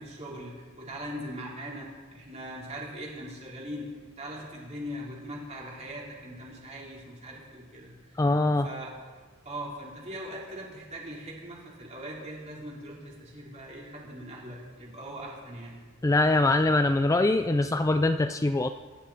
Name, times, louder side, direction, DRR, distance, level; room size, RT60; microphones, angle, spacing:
voice 1, 0.0-1.9 2.1-3.9 4.2-8.2 8.6-9.0 9.4-15.8, equal, 35° right, -4 dB, 4.3 m, -40 dB
voice 2, 8.2-8.7 16.0-18.7, left 2 dB, 15° left, 9 dB, 0.4 m, -23 dB
24.0 x 12.5 x 4.4 m, 1.5 s
head